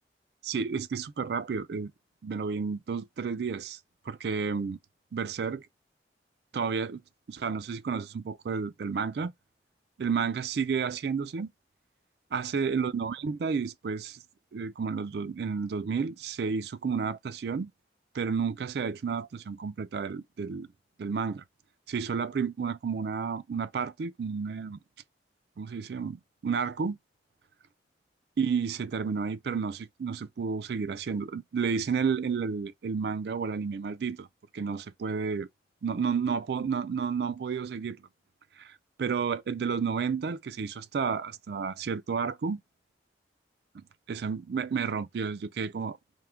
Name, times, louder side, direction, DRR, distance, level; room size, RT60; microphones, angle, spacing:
voice 1, 0.4-1.9 2.2-3.8 4.1-4.8 5.1-5.7 6.5-7.0 7.3-9.3 10.0-11.5 12.3-14.2 14.5-17.7 18.1-20.7 21.0-21.4 21.9-24.8 25.6-27.0 28.4-34.3 34.5-35.5 35.8-38.0 38.6-42.6 43.7-46.0, right 5 dB, 65° right, 0.4 m, -31 dB
4.6 x 2.2 x 3.6 m
head